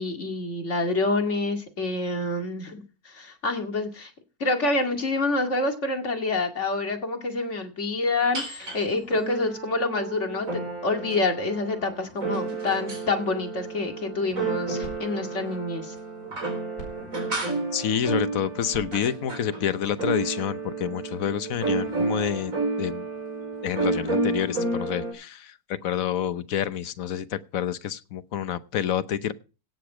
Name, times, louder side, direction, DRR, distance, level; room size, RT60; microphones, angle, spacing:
voice 1, 0.0-4.1 4.4-16.0, left 2 dB, 50° left, 4 dB, 2.5 m, -27 dB
sound 1, 8.3-8.8 9.1-25.1, right 3 dB, 60° right, 4.2 m, -31 dB
sound 2, 14.2-20.7, right 1 dB, 85° left, 5.7 m, -49 dB
voice 2, 17.7-22.5 22.8-23.1 23.6-29.3, left 9 dB, 65° left, 14 dB, 1.2 m, -28 dB
17.5 x 6.7 x 4.9 m, 0.34 s
omnidirectional pair, 1.6 m